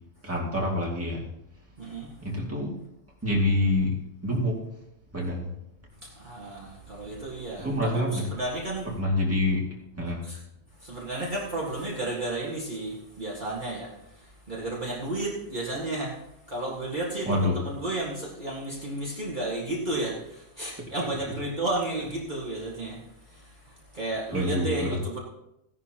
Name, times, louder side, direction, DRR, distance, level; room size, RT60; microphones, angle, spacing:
voice 1, 0.2-1.2 2.2-2.8 3.2-4.6 5.1-5.5 7.6-8.3 9.0-9.6 10.0-10.2 17.2-17.6 21.0-21.1 24.3-25.0, left 1 dB, 10° right, -3 dB, 2.4 m, -26 dB
voice 2, 1.8-2.1 6.0-8.9 10.2-10.4 10.7-16.2 16.5-25.2, right 2 dB, 35° right, -4 dB, 2.0 m, -33 dB
16.0 x 11.0 x 3.0 m, 0.83 s
omnidirectional pair, 1.3 m